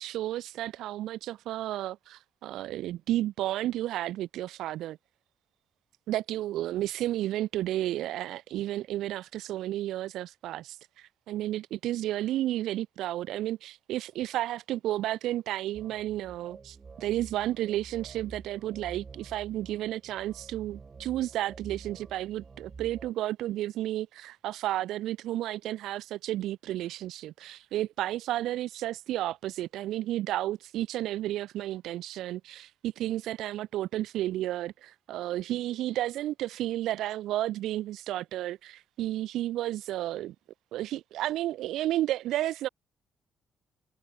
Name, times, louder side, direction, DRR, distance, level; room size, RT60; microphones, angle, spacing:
voice 1, 0.0-5.0 6.1-40.3 40.7-42.7, right 14 dB, 85° right, 0.7 m, -32 dB
sound 1, 15.7-23.1, right 4 dB, 35° right, 2.2 m, -48 dB
cardioid pair, 90°, 0 cm